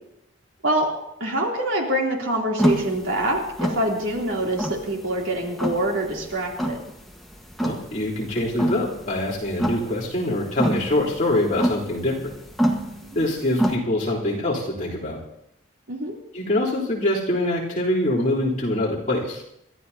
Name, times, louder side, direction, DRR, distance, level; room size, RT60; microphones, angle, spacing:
voice 1, 1.2-6.8 13.0-13.3 15.9-16.1, right 1 dB, 80° right, -1 dB, 3.1 m, -25 dB
sound 1, 2.6-13.8, equal, ahead, 1.3 m, -27 dB
voice 2, 7.6-12.3 13.2-15.2 16.3-19.4, left 1 dB, 40° left, -6 dB, 3.5 m, -24 dB
28.0 x 12.5 x 2.8 m, 0.78 s
head